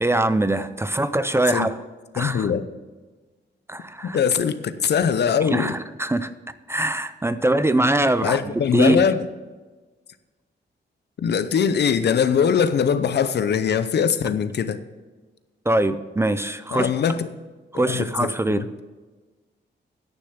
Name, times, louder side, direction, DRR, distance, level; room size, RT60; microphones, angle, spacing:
voice 1, 0.0-1.8 2.1-2.5 3.7-4.2 5.4-6.3 6.7-9.1 15.7-16.9 17.7-18.6, right 1 dB, 15° right, 12 dB, 0.4 m, -22 dB
voice 2, 2.2-2.6 4.0-5.7 8.2-9.2 11.2-14.8 16.7-17.3 17.7-18.7, left 7 dB, 65° left, 12 dB, 0.7 m, -22 dB
10.0 x 6.6 x 7.2 m, 1.3 s
wide cardioid pair, 115°, 19 cm